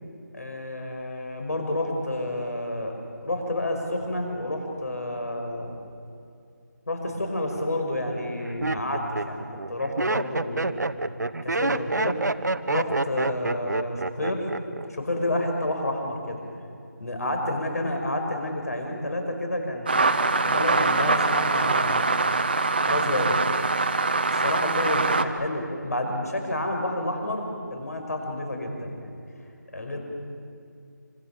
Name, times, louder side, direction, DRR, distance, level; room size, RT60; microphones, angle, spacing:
voice 1, 0.3-2.9 3.2-5.8 6.9-10.8 11.4-12.2 12.7-14.5 14.9-16.4 17.0-20.1 20.4-22.1 22.9-23.4 24.3-29.2 29.7-30.0, left 1 dB, 55° left, 3 dB, 5.7 m, -29 dB
Laughter, 7.2-7.6 8.2-14.9 15.1-15.6, right 2 dB, 70° right, 1.1 m, -28 dB
sound 1, 19.9-25.2, right 3 dB, 30° right, 1.0 m, -23 dB
26.0 x 26.0 x 7.4 m, 2.5 s
figure-of-eight pair, 175°, 10 cm